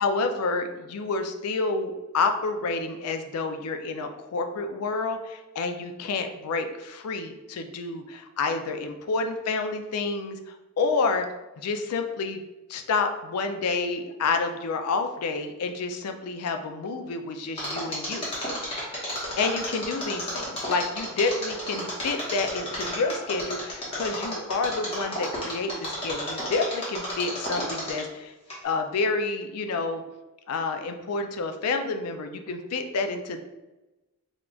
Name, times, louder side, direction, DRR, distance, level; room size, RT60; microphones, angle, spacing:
voice 1, 0.0-11.3 11.6-12.4 12.7-18.3 19.4-28.3 28.6-30.0 30.5-33.4, left 4 dB, 90° left, 6 dB, 0.4 m, -29 dB
Mechanisms, 17.6-28.2 28.5-28.6, equal, 25° left, 1.0 m, -32 dB
3.5 x 2.3 x 3.7 m, 1.0 s
head